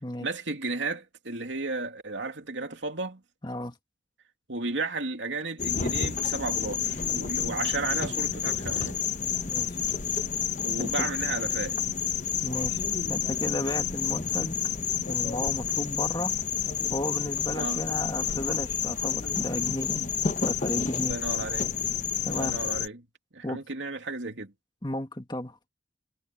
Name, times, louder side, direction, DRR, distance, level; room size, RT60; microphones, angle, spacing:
voice 1, 0.2-3.2 4.5-9.0 10.6-11.7 17.6-17.8 20.9-21.8 22.3-23.0 23.3-24.5, right 3 dB, 90° right, 2.8 m, -33 dB
voice 2, 3.4-3.8 9.5-9.8 10.8-11.1 12.4-14.7 15.1-16.3 16.9-19.9 20.4-21.2 22.2-22.6 23.4-23.6 24.8-25.6, left 1 dB, 25° left, 1.9 m, -33 dB
sound 1, 5.6-22.9, left 7 dB, 45° left, 1.1 m, -29 dB
head